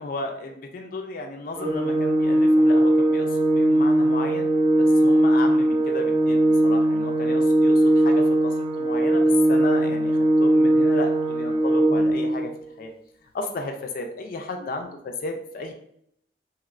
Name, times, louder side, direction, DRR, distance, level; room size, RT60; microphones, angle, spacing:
voice 1, 0.0-12.5 12.8-12.9 13.3-15.7, left 2 dB, 50° left, 4 dB, 0.3 m, -34 dB
Organ, 1.6-12.5, right 1 dB, 30° right, 0.3 m, -20 dB
3.0 x 2.8 x 2.4 m, 0.71 s
head